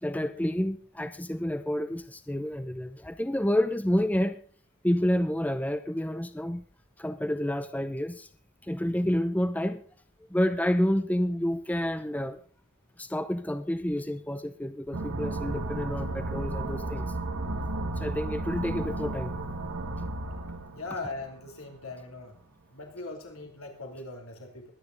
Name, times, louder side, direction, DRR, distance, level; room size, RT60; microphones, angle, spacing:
voice 1, 0.0-4.4 4.8-6.6 7.0-8.3 8.7-9.8 10.3-12.4 13.0-17.0 18.0-19.3, equal, 5° left, 10 dB, 0.6 m, -29 dB
sound 1, 14.9-21.5, right 2 dB, 85° right, 2.0 m, -33 dB
voice 2, 20.7-22.4 22.7-24.7, left 3 dB, 85° left, 3 dB, 3.1 m, -40 dB
22.5 x 9.7 x 3.9 m, 0.42 s
head